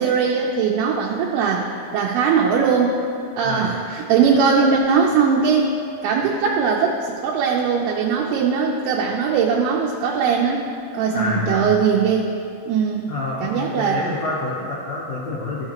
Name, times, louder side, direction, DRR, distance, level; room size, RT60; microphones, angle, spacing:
voice 1, 0.0-3.0 3.4-5.7 6.0-10.6 10.9-12.3 12.7-13.1 13.4-14.0, right 6 dB, 80° right, -1 dB, 2.5 m, -20 dB
voice 2, 11.1-11.8 13.1-15.7, left 3 dB, 75° left, -7 dB, 1.6 m, -27 dB
13.5 x 5.7 x 2.9 m, 2.5 s
omnidirectional pair, 4.7 m